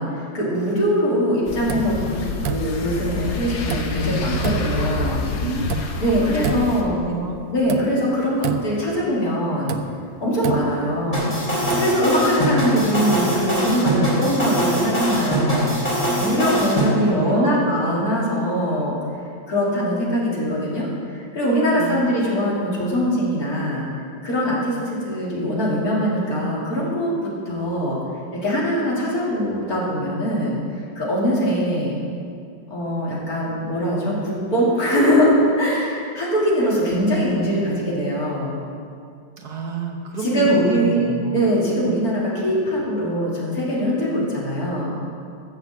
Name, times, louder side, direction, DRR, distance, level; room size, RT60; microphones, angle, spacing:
voice 1, 0.0-5.2 6.0-7.0 7.5-9.8 10.2-15.8 16.2-19.0 19.5-20.9 21.1-23.9 24.2-28.0 28.3-30.6 31.0-32.0 32.7-38.6 40.2-41.1 41.3-45.0, equal, 50° left, -6 dB, 3.4 m, -22 dB
sound 1, 1.4-6.8, left 3 dB, 75° left, 1.8 m, -27 dB
sound 2, 1.7-2.1 2.4-3.0 3.7-4.1 4.4-4.9 5.7-6.0 6.4-6.9 7.7-8.1 8.4-8.9 9.7-11.2 11.6-12.0, right 10 dB, 75° right, 1.3 m, -30 dB
voice 2, 5.4-5.7 6.0-7.8 16.7-17.7 21.7-22.1 39.4-41.5, right 4 dB, 60° right, 2 dB, 1.6 m, -30 dB
sound 3, 11.1-16.9, right 1 dB, 25° left, 3.4 m, -22 dB
13.5 x 6.8 x 7.5 m, 2.4 s
omnidirectional pair, 2.0 m